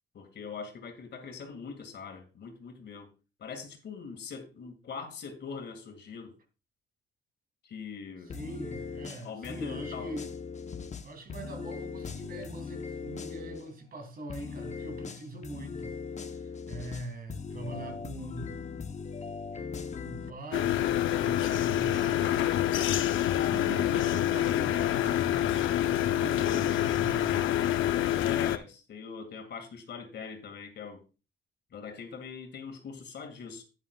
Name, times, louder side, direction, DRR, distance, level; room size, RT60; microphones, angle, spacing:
voice 1, 0.1-3.1 3.4-6.4 7.6-8.4 9.2-10.1 28.2-31.0 31.7-33.6, left 5 dB, 60° left, 2.2 m, -42 dB
sound 1, 8.3-13.6 14.3-20.3, left 5 dB, 35° left, 0.9 m, -39 dB
voice 2, 8.3-10.3 11.0-15.9 16.2-18.7 20.1-22.5 23.3-27.6, right 2 dB, 50° right, 2.9 m, -42 dB
sound 2, 20.5-28.6, left 12 dB, 80° left, 0.7 m, -27 dB
11.5 x 9.7 x 2.4 m
cardioid pair, 90°, 20 cm